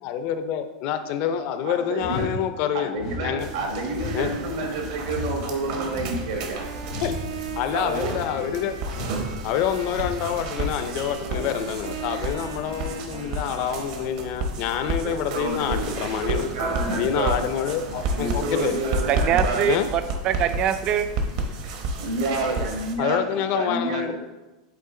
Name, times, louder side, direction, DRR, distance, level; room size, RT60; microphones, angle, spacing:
voice 1, 0.0-2.9 3.2-3.5 4.1-4.3 7.0-7.2 7.6-8.8 9.4-16.5 16.9-18.8 19.7-19.9 23.0-24.1, left 9 dB, 40° left, 9 dB, 0.5 m, -27 dB
voice 2, 1.6-2.2 2.7-6.6 7.7-8.4 15.0-17.4 18.1-19.7 22.0-24.1, right 2 dB, 70° right, 2 dB, 1.6 m, -29 dB
sound 1, 2.0-2.4 3.0-3.3 3.9-4.3 5.0-5.3 6.0-6.3 6.9-7.1 7.9-8.3 8.9-9.2 9.9-10.2, left 3 dB, 90° left, 1.8 m, -33 dB
sound 2, 3.4-23.0, right 2 dB, 50° right, 0.9 m, -31 dB
Wind instrument woodwind instrument, 5.4-14.2, right 6 dB, 85° right, 0.8 m, -40 dB
voice 3, 19.1-21.1, right 9 dB, 30° right, 10 dB, 0.4 m, -23 dB
8.3 x 3.7 x 3.7 m, 1.1 s
supercardioid pair, 170°, 3 cm